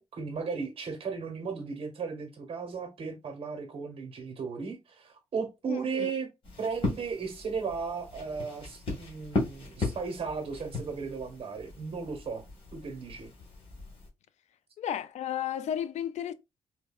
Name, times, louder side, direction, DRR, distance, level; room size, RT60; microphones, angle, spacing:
voice 1, 0.0-6.3 6.6-12.4 12.7-13.3, right 5 dB, 50° right, 1.3 m, -35 dB
voice 2, 5.7-6.1 14.8-16.3, left 10 dB, 70° left, 0.4 m, -33 dB
sound 1, 6.4-14.1, left 2 dB, 50° left, 1.9 m, -37 dB
4.3 x 2.6 x 2.4 m
cardioid pair, 100°, 12 cm